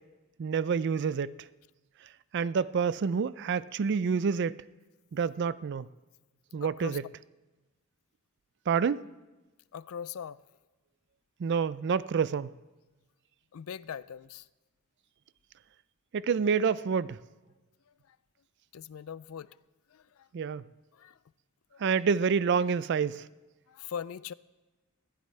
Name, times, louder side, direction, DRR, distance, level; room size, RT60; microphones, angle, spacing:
voice 1, 0.4-1.3 2.3-4.6 5.1-5.9 6.5-7.0 8.7-9.0 11.4-12.5 16.1-17.2 20.3-20.6 21.8-23.2, right 6 dB, 50° right, 0.4 m, -28 dB
voice 2, 6.6-7.0 9.7-10.4 13.5-14.4 18.7-19.6 19.9-20.3 20.9-21.2 21.7-21.8 23.7-24.3, left 8 dB, 65° left, 0.4 m, -41 dB
21.0 x 15.0 x 3.3 m
head